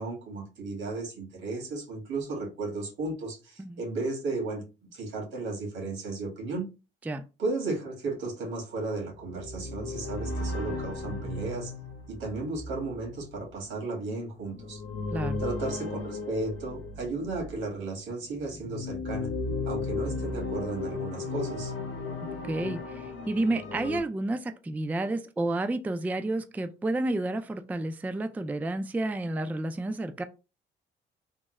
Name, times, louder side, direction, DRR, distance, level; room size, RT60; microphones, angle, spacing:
voice 1, 0.0-4.6 4.9-6.6 7.4-11.7 12.1-14.8 15.4-19.3 19.7-21.7, right 3 dB, 85° right, 1.8 m, -34 dB
sound 1, 9.2-17.7 18.3-24.0, left 3 dB, 85° left, 0.7 m, -35 dB
voice 2, 22.4-30.2, right 2 dB, 10° right, 0.3 m, -30 dB
3.5 x 2.0 x 3.0 m
cardioid pair, 90°, 20 cm